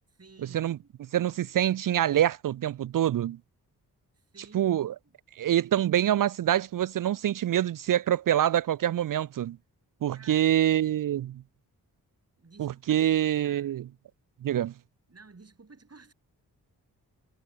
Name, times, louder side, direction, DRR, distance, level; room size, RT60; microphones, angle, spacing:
voice 1, 0.1-0.9 4.1-4.8 5.0-5.1 10.1-10.5 12.4-13.7 15.1-16.1, right 4 dB, 40° right, 7.5 m, -54 dB
voice 2, 1.1-3.4 4.5-4.9 5.4-9.6 10.0-11.4 12.6-13.8 14.4-14.7, right 11 dB, 55° right, 0.5 m, -25 dB
cardioid pair, 55°, 39 cm